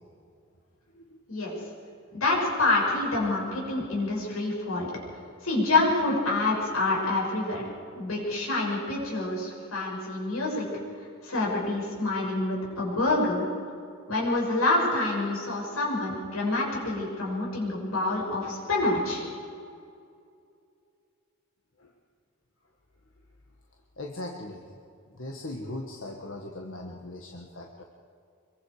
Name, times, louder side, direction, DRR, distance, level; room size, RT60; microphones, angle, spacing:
voice 1, 2.1-4.9 5.4-7.7 7.9-10.7 11.2-13.4 14.1-19.2, left 2 dB, 85° left, -3 dB, 7.1 m, -27 dB
voice 2, 24.0-24.7 25.2-27.8, left 1 dB, 65° left, 1 dB, 1.7 m, -39 dB
25.5 x 23.0 x 5.0 m, 2.4 s
head